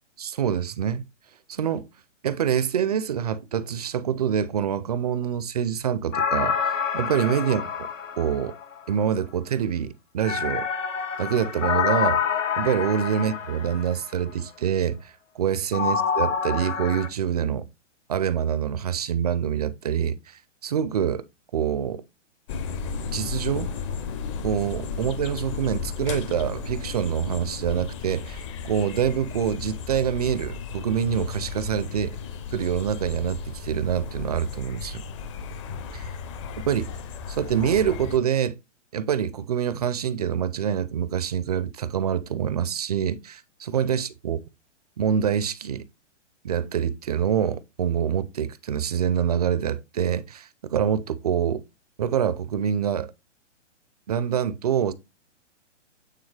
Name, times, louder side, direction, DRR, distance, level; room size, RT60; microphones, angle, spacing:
voice 1, 0.2-1.0 1.5-1.9 2.2-7.9 8.2-8.5 8.9-10.7 11.2-12.2 12.6-17.7 18.1-21.2 21.5-22.0 23.1-23.7 24.4-32.2 32.5-35.0 35.9-36.1 36.6-36.9 37.3-38.6 38.9-44.4 45.0-45.8 46.4-51.6 52.0-53.1 54.1-54.9, right 8 dB, 35° right, 0.4 m, -26 dB
sound 1, 6.1-8.9 10.2-14.1 15.7-17.1, left 6 dB, 85° left, 1.2 m, -27 dB
sound 2, 22.5-38.2, left 6 dB, 25° left, 0.5 m, -34 dB
8.8 x 3.6 x 3.2 m
hypercardioid pair, 140°, 37 cm